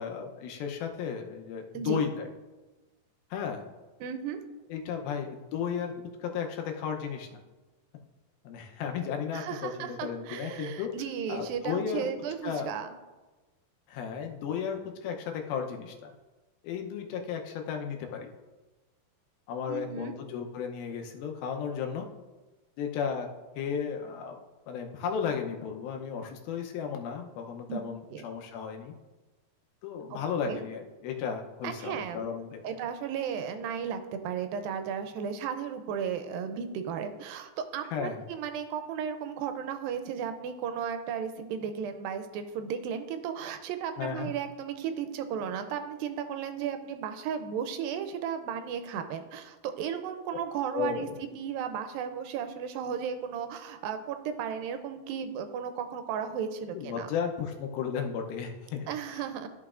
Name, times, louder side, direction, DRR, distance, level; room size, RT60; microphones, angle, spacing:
voice 1, 0.0-2.3 3.3-3.6 4.7-7.3 8.4-10.9 11.3-12.1 12.4-12.7 13.9-16.1 16.6-18.3 19.5-22.1 22.8-23.3 23.6-24.4 24.7-28.9 29.8-32.8 37.9-38.2 44.0-44.3 50.7-51.2 56.7-58.9, left 7 dB, 85° left, 3 dB, 2.7 m, -34 dB
voice 2, 4.0-4.4 9.3-12.9 19.7-20.1 27.7-27.8 28.1-28.2 30.1-30.2 30.4-30.6 31.6-32.3 32.6-57.1 58.9-59.5, right 7 dB, 80° right, 8 dB, 2.3 m, -35 dB
13.5 x 5.8 x 2.5 m, 1.2 s
omnidirectional pair, 4.2 m